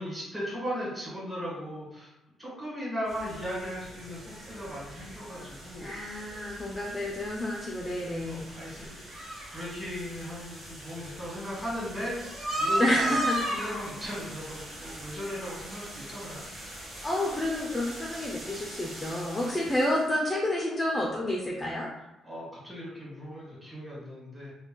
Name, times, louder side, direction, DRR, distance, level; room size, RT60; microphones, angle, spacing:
voice 1, 0.0-2.1 2.4-5.9 8.2-8.9 9.5-13.1 13.5-16.5 22.2-24.5, equal, 10° right, -8 dB, 1.4 m, -37 dB
sound 1, 3.1-20.1, right 1 dB, 50° right, 1.2 m, -38 dB
voice 2, 5.8-8.4 12.8-13.5 17.0-21.9, left 1 dB, 20° left, -2 dB, 0.5 m, -29 dB
2.5 x 2.2 x 3.6 m, 0.91 s
cardioid pair, 90°, 0 cm